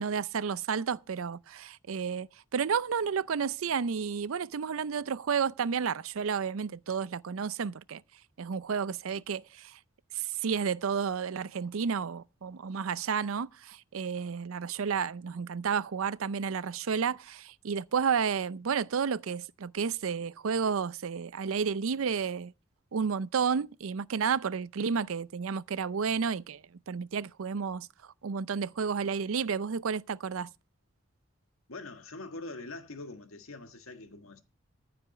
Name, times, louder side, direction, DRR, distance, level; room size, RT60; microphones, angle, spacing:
voice 1, 0.0-2.3 2.5-8.0 8.4-9.8 10.1-22.5 22.9-26.6 26.9-27.9 28.2-30.5, right 6 dB, 85° right, 0.5 m, -31 dB
voice 2, 31.7-34.4, left 2 dB, 85° left, 1.6 m, -43 dB
14.5 x 5.1 x 7.0 m
head